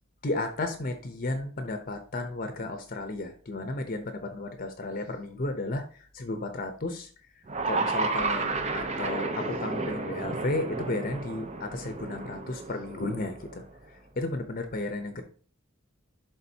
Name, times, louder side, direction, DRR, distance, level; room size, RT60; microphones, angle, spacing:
voice 1, 0.2-5.8 6.1-7.1 7.6-13.6 14.2-15.2, left 2 dB, 40° left, 7 dB, 0.8 m, -33 dB
sound 1, 7.5-13.7, right 3 dB, 30° right, 0.8 m, -32 dB
11.0 x 3.8 x 2.8 m, 0.43 s
head